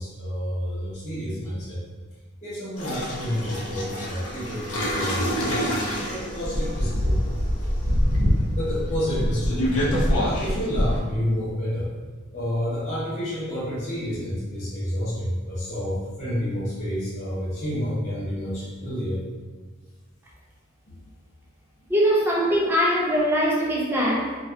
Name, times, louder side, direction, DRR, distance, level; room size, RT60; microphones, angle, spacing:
voice 1, 0.0-1.8 2.4-7.2 8.5-11.9 12.3-19.2 20.9-21.0, equal, 35° left, -11 dB, 0.6 m, -29 dB
sound 1, 2.8-11.0, equal, 75° left, 0.6 m, -25 dB
voice 2, 21.9-24.4, equal, 10° right, -3 dB, 0.4 m, -22 dB
2.6 x 2.2 x 2.2 m, 1.4 s
head